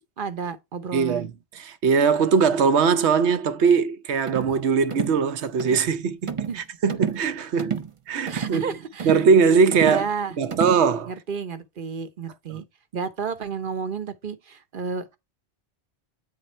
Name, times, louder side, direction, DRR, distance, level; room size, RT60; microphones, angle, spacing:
voice 1, 0.2-1.3 4.4-4.5 6.5-6.6 8.3-9.1 9.8-10.4 11.1-12.6 12.9-15.2, right 5 dB, 50° right, 1.0 m, -31 dB
voice 2, 0.9-1.3 1.5-7.8 8.1-8.7 9.0-10.1 10.4-11.1 12.5-12.6, right 5 dB, 80° right, 1.1 m, -21 dB
sound 1, 4.3-4.5 4.9-5.2 5.6-5.8 6.3-6.6 6.9-7.3 7.6-7.9 8.3-8.6 9.0-9.3 9.7-10.0 10.5-10.8, right 7 dB, 35° right, 0.6 m, -30 dB
9.0 x 3.7 x 4.3 m
omnidirectional pair, 1.1 m